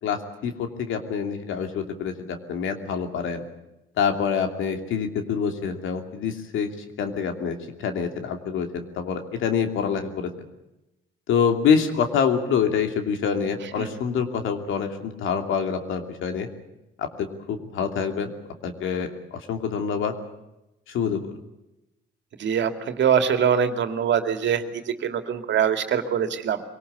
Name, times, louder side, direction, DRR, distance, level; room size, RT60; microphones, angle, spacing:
voice 1, 0.0-3.4 4.0-6.7 7.0-10.3 11.3-16.5 17.0-18.3 18.6-20.1 20.9-21.3, left 6 dB, 85° left, 6 dB, 2.8 m, -26 dB
voice 2, 22.4-26.6, right 8 dB, 65° right, 7 dB, 2.4 m, -23 dB
24.0 x 18.5 x 8.2 m, 0.93 s
cardioid pair, 90°, 20 cm